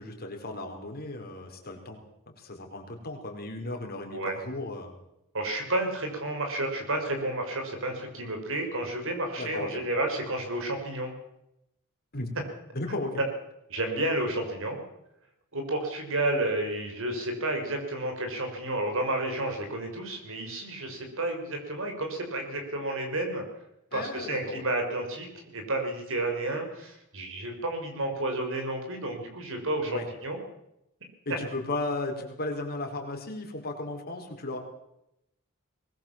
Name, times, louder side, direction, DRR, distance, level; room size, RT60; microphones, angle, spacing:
voice 1, 0.0-2.0 2.4-5.0 9.4-9.8 12.1-12.3 12.7-13.2 23.9-24.6 29.8-30.0 31.2-34.6, left 2 dB, 45° left, 3 dB, 4.6 m, -35 dB
voice 2, 5.3-11.1 13.7-14.8 15.5-23.4 23.9-30.4, right 1 dB, 65° right, 4 dB, 6.1 m, -31 dB
22.5 x 20.0 x 7.4 m, 0.83 s
head